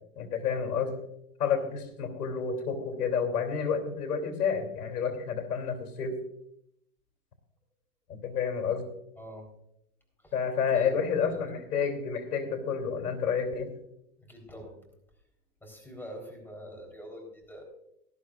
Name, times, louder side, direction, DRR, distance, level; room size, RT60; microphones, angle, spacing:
voice 1, 0.1-1.0 1.4-6.2 8.1-8.9 10.3-13.7, left 6 dB, 75° left, 5 dB, 3.1 m, -30 dB
voice 2, 9.2-9.5 10.2-10.3 10.7-11.0 14.2-14.8 15.6-17.6, equal, 5° left, 1 dB, 3.8 m, -45 dB
18.5 x 13.0 x 2.5 m, 0.76 s
hypercardioid pair, 120°, 46 cm